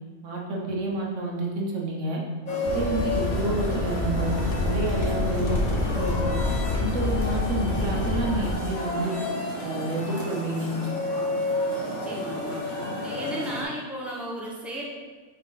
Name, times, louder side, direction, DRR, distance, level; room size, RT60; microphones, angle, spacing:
voice 1, 0.2-2.2 2.6-5.6 5.9-6.4 6.8-9.2 9.6-10.7, right 2 dB, 70° right, -2 dB, 1.5 m, -29 dB
sound 1, 2.5-13.6, left 1 dB, 35° left, 1.3 m, -31 dB
sound 2, 2.6-8.5, left 2 dB, 55° left, 0.8 m, -27 dB
voice 2, 11.8-12.6 13.0-14.8, right 1 dB, ahead, -4 dB, 1.1 m, -35 dB
8.8 x 3.9 x 4.0 m, 1.4 s
omnidirectional pair, 1.3 m